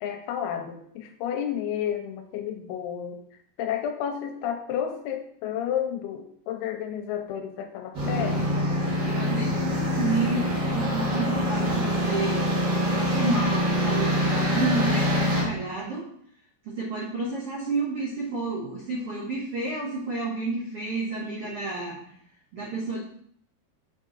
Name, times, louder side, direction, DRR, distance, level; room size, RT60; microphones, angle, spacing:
voice 1, 0.0-3.2 3.6-8.7, left 9 dB, 80° left, 6 dB, 2.5 m, -31 dB
sound 1, 7.9-15.4, equal, 40° right, 1.5 m, -25 dB
voice 2, 9.0-12.4 12.9-16.0 16.6-22.0 22.5-23.0, right 3 dB, 75° right, -6 dB, 1.3 m, -30 dB
6.3 x 4.9 x 3.9 m, 0.66 s
omnidirectional pair, 4.8 m